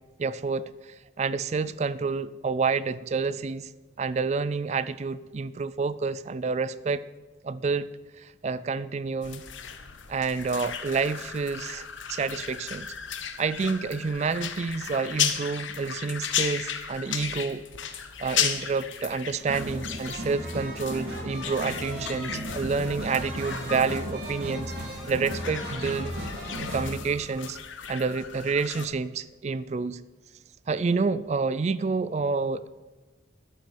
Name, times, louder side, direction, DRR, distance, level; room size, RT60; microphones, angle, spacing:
voice 1, 0.2-0.7 1.2-3.7 4.0-7.0 7.4-7.9 8.2-9.4 10.1-12.9 13.4-17.6 18.2-24.7 25.1-26.1 26.6-27.6 27.9-30.0 30.7-32.7, right 4 dB, 35° right, 17 dB, 0.3 m, -28 dB
sound 1, 9.2-28.9, left 8 dB, 80° left, 1.0 m, -35 dB
sound 2, 19.4-26.9, equal, 55° right, 4.1 m, -36 dB
11.5 x 6.0 x 9.1 m, 1.2 s
head